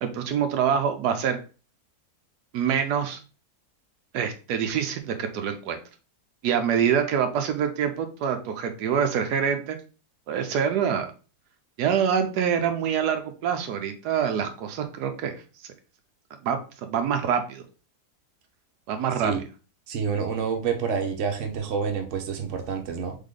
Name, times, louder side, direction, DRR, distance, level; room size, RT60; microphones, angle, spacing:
voice 1, 0.0-1.4 2.5-3.2 4.1-5.8 6.4-9.8 10.3-11.1 11.8-15.4 16.4-17.6 18.9-19.3, right 8 dB, 85° right, 6 dB, 1.2 m, -25 dB
voice 2, 19.9-23.2, right 6 dB, 55° right, 4 dB, 1.1 m, -28 dB
3.6 x 3.6 x 3.7 m, 0.35 s
omnidirectional pair, 1.7 m